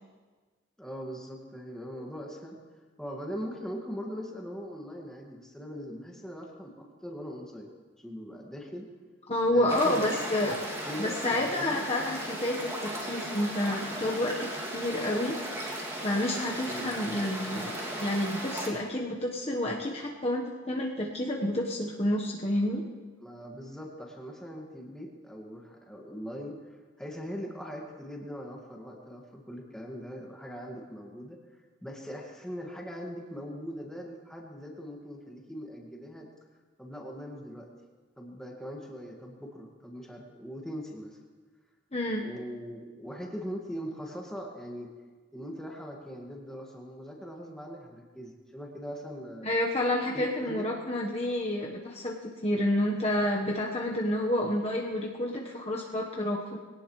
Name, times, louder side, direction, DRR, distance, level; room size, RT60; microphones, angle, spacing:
voice 1, 0.8-2.6 3.0-7.7 8.0-8.9 9.5-10.4 10.8-11.9 16.7-16.9 23.2-31.4 31.8-36.3 36.8-37.7 38.2-41.2 42.2-44.9 45.3-49.5 50.1-50.7, equal, 5° left, -1 dB, 1.9 m, -41 dB
voice 2, 9.3-10.5 11.0-15.4 16.0-22.8 41.9-42.3 49.4-56.6, left 1 dB, 30° left, -2 dB, 1.2 m, -29 dB
sound 1, 9.7-18.7, right 1 dB, 15° right, 2.5 m, -36 dB
22.0 x 17.5 x 3.2 m, 1.4 s
head